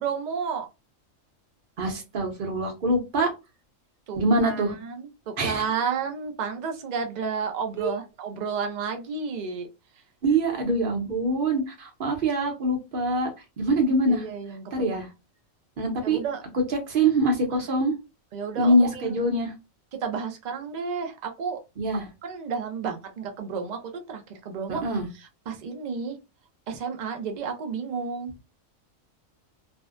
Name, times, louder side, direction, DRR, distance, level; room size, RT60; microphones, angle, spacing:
voice 1, 0.0-0.7 4.1-9.7 9.9-10.0 14.1-14.7 16.0-16.4 18.3-19.1 20.0-21.6 22.2-24.8 25.1-26.2 26.7-28.3, right 6 dB, 85° right, 5 dB, 0.3 m, -31 dB
voice 2, 1.8-3.3 4.2-4.7 5.4-5.6 7.8-7.9 10.2-13.3 13.6-14.2 14.7-15.1 15.8-16.2 16.9-17.9 18.6-19.5 21.8-22.0 24.7-25.1, right 1 dB, 45° right, 2 dB, 0.8 m, -24 dB
2.6 x 2.1 x 2.4 m, 0.25 s
omnidirectional pair, 1.4 m